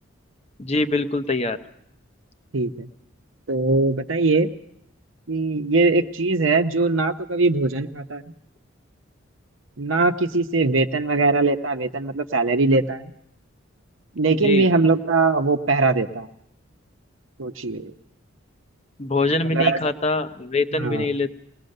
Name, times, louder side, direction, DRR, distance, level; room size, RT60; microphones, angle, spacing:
voice 1, 0.6-1.6 14.3-14.7 19.0-21.4, left 2 dB, 30° left, 9 dB, 0.8 m, -24 dB
voice 2, 2.5-2.9 3.5-4.5 5.3-8.2 9.8-13.1 14.1-16.3 17.4-17.9 19.5-19.8 20.8-21.1, right 3 dB, 70° right, 5 dB, 0.9 m, -21 dB
21.5 x 19.0 x 6.6 m, 0.74 s
head